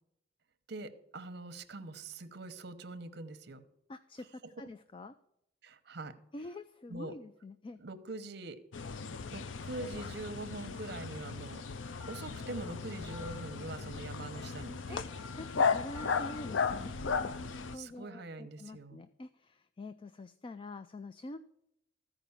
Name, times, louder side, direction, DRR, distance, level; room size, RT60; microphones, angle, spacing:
voice 1, 0.7-3.6 4.6-4.7 5.6-6.2 6.9-7.1 7.8-8.6 9.3-11.6 12.1-15.0 17.7-19.0, right 2 dB, 60° right, 11 dB, 0.9 m, -43 dB
voice 2, 3.9-5.1 6.3-7.8 14.9-15.0 15.3-21.4, left 2 dB, 30° left, 11 dB, 0.3 m, -46 dB
sound 1, 8.7-17.8, left 5 dB, 90° left, 0.5 m, -36 dB
sound 2, 12.0-17.4, left 4 dB, 45° left, 1.8 m, -51 dB
14.0 x 5.0 x 7.0 m, 0.80 s
head